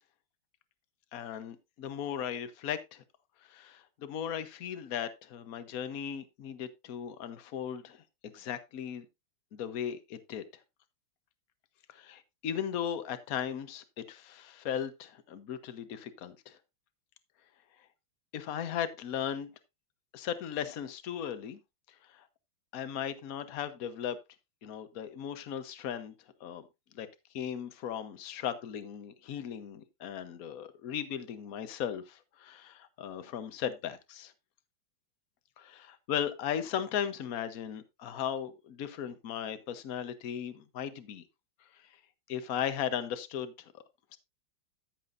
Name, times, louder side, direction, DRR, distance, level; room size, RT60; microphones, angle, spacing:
voice 1, 1.1-3.0 3.5-9.1 9.5-10.4 11.9-16.6 18.3-19.5 20.1-21.6 22.1-22.2 22.7-24.2 24.6-26.1 26.4-26.7 26.9-27.1 27.3-34.3 35.6-41.2 42.3-43.5 44.1-44.2, left 9 dB, 50° left, 1.2 m, -37 dB
14.0 x 7.6 x 2.6 m
omnidirectional pair, 2.4 m